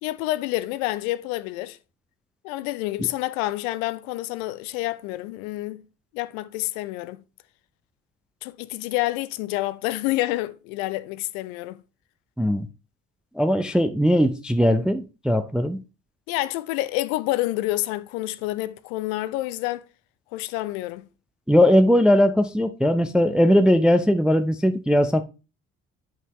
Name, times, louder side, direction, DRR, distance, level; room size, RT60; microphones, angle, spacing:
voice 1, 0.0-1.8 2.4-5.8 6.1-7.2 8.4-11.8 16.3-19.8 20.3-21.1, left 17 dB, 65° left, 0.6 m, -28 dB
voice 2, 13.4-15.8 21.5-25.2, equal, ahead, 0.4 m, -19 dB
9.0 x 5.4 x 3.1 m
figure-of-eight pair, 45°, 47 cm